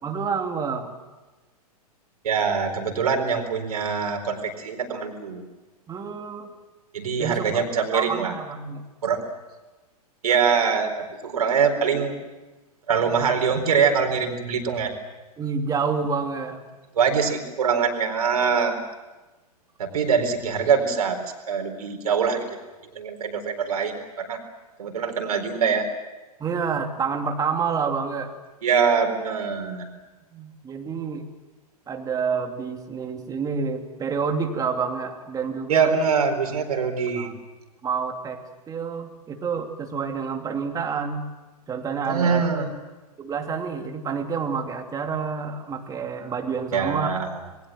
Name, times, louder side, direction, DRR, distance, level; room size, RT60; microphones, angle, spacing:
voice 1, 0.0-1.0 5.9-6.5 7.2-7.6 7.9-8.8 15.4-16.6 26.4-28.3 30.3-31.3 31.9-35.9 37.2-37.3 37.8-38.4 38.7-41.3 41.7-42.4 43.2-47.1, right 5 dB, 20° right, 4 dB, 2.8 m, -28 dB
voice 2, 2.2-5.4 6.9-8.4 9.0-9.2 10.2-12.2 12.9-14.9 17.0-18.8 19.8-21.2 21.5-22.4 22.9-24.4 24.8-25.9 28.6-29.9 35.7-37.3 42.0-42.7 46.7-47.4, right 6 dB, 70° right, 4 dB, 4.2 m, -23 dB
27.5 x 21.5 x 7.7 m, 1.2 s
hypercardioid pair, 110°, 20 cm